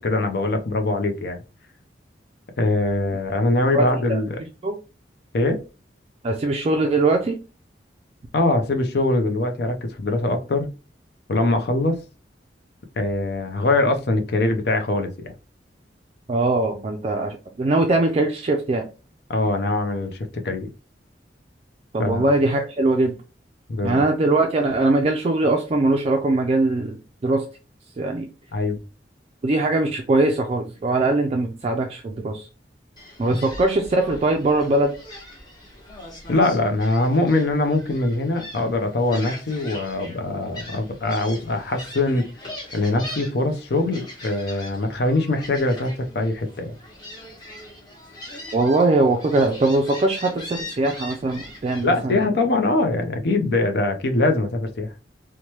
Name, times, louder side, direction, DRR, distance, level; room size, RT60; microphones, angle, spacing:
voice 1, 0.0-1.4 2.6-4.4 5.3-5.6 8.3-10.7 11.3-12.0 13.0-15.3 19.3-20.7 22.0-22.2 23.7-24.0 28.5-28.8 36.3-42.3 42.7-46.8 51.8-54.9, left 2 dB, 60° left, 0.5 m, -22 dB
voice 2, 3.7-4.2 4.6-4.7 6.2-7.4 16.3-18.9 21.9-23.1 23.8-27.4 28.0-28.3 29.4-32.5 33.2-34.9 48.5-52.2, right 2 dB, 35° right, 0.3 m, -21 dB
Gull seagull, 33.0-52.0, left 1 dB, 25° left, 1.0 m, -41 dB
3.1 x 2.1 x 2.8 m
head